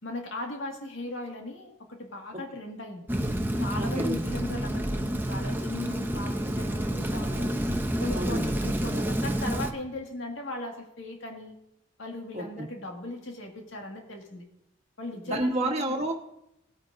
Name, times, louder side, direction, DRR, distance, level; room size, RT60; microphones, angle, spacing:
voice 1, 0.0-3.1 3.6-7.5 8.0-11.5 12.0-14.4 15.0-16.0, left 2 dB, 75° left, 2 dB, 1.9 m, -38 dB
Rain, 3.1-9.7, right 1 dB, 10° right, 0.6 m, -29 dB
voice 2, 3.8-4.2 8.1-8.5 12.3-12.7 15.2-16.1, right 1 dB, 35° right, -1 dB, 1.3 m, -30 dB
18.0 x 8.8 x 2.6 m, 0.83 s
head